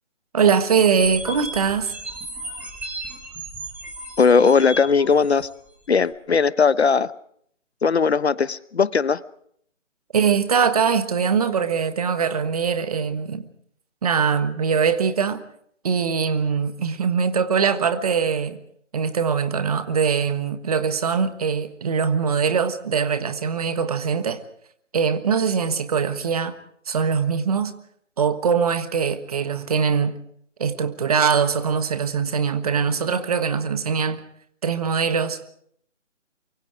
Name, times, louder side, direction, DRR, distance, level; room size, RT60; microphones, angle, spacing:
voice 1, 0.3-1.9 10.1-13.5 14.0-15.4 15.8-18.6 18.9-24.4 24.9-26.6 26.9-27.7 28.2-30.2 30.6-34.2 34.6-35.5, right 6 dB, 30° right, 1.4 m, -22 dB
sound 1, 1.0-5.5, right 2 dB, 5° right, 2.1 m, -34 dB
voice 2, 4.2-5.5 5.9-7.1 7.8-9.2, left 5 dB, 60° left, 0.9 m, -18 dB
24.0 x 24.0 x 5.0 m
figure-of-eight pair, 155°, 37 cm